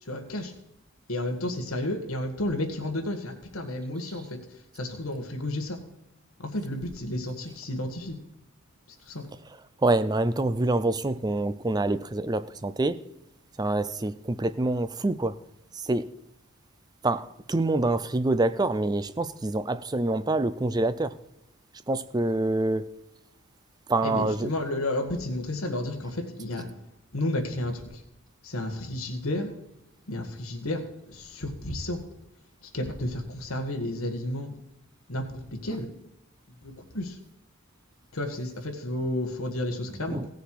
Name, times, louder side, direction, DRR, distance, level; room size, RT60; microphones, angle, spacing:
voice 1, 0.0-0.5 1.1-4.4 4.7-5.8 6.4-8.2 9.1-9.3 24.0-26.7 27.1-28.0 28.4-29.5 30.1-30.8 31.1-32.0 32.6-34.6 35.1-35.2 35.6-35.9 36.6-37.2 38.1-40.2, left 1 dB, 75° left, 1.7 m, -31 dB
voice 2, 9.8-13.0 13.6-15.3 15.7-16.1 17.0-21.1 21.9-22.9 23.9-24.5 40.1-40.3, right 2 dB, 20° right, 0.4 m, -26 dB
16.5 x 6.8 x 4.7 m
head